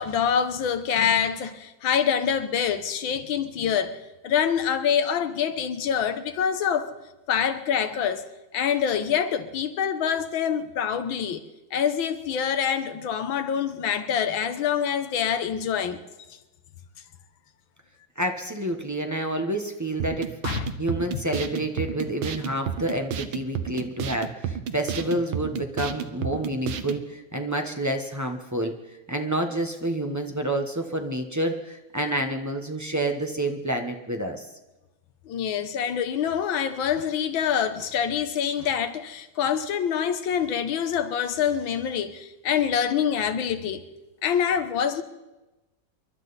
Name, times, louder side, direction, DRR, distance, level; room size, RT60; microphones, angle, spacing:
voice 1, 0.0-6.9 7.3-11.4 11.7-16.0 20.4-20.7 35.3-43.9 44.2-45.0, left 8 dB, 75° left, 1.7 m, -26 dB
voice 2, 18.2-20.3 20.8-34.5, right 1 dB, 15° right, 0.7 m, -28 dB
sound 1, 20.0-27.0, right 8 dB, 90° right, 1.7 m, -32 dB
28.5 x 12.0 x 4.1 m
omnidirectional pair, 2.2 m